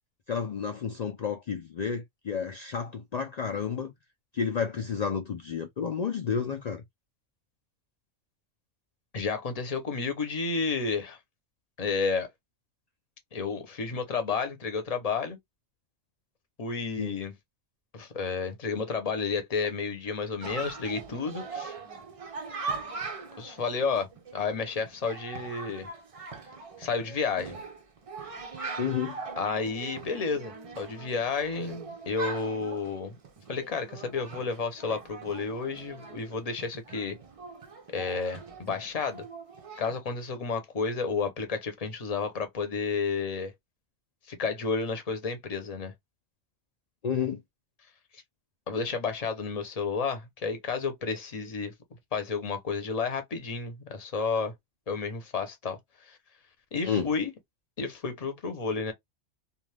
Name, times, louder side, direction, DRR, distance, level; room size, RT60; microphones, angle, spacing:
voice 1, 0.3-3.9 4.3-6.8 17.0-17.2 28.8-29.2 47.0-47.4 56.8-57.1, left 6 dB, 75° left, 0.3 m, -31 dB
voice 2, 9.1-11.2 11.8-12.3 13.3-15.4 16.6-17.3 17.9-21.7 23.4-25.9 26.8-27.6 29.4-33.2 33.5-37.2 37.9-39.2 39.8-43.5 44.3-45.9 48.7-51.7 52.1-54.5 54.9-56.2 56.7-57.3 57.8-58.9, left 4 dB, 35° left, 0.7 m, -31 dB
Chatter, 20.4-40.0, right 4 dB, 45° right, 0.4 m, -41 dB
2.5 x 2.3 x 3.2 m
omnidirectional pair, 1.2 m